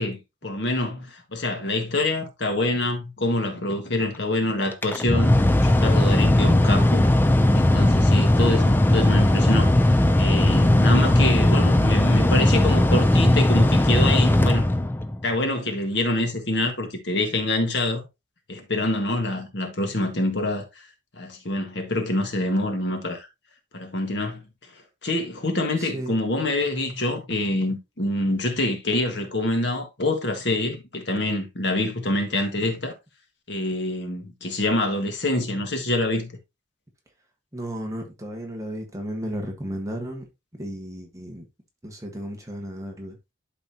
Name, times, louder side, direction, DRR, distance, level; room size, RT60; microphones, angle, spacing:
voice 1, 0.0-7.1 7.5-14.7 15.2-18.1 18.5-20.9 21.2-23.3 23.7-24.4 25.0-32.9 33.5-36.3, left 2 dB, 60° left, 1.6 m, -26 dB
Mechanical fan, 4.7-15.2, left 1 dB, 10° left, 0.4 m, -18 dB
voice 2, 25.8-26.2 37.5-40.3 40.6-41.4 41.8-43.2, equal, 15° right, 1.4 m, -34 dB
11.5 x 4.1 x 2.8 m
head